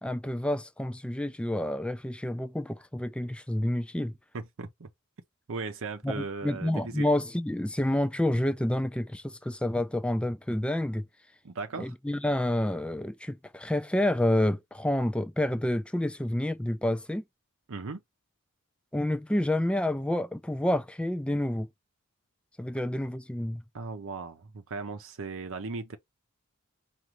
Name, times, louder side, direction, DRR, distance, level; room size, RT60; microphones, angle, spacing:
voice 1, 0.0-4.1 6.0-11.0 11.8-17.2 18.9-21.7 22.6-23.6, left 1 dB, 5° left, 0.4 m, -29 dB
voice 2, 4.3-4.9 5.5-7.1 11.4-11.9 17.7-18.0 23.7-26.0, right 4 dB, 65° right, 0.7 m, -37 dB
5.0 x 2.6 x 2.9 m
head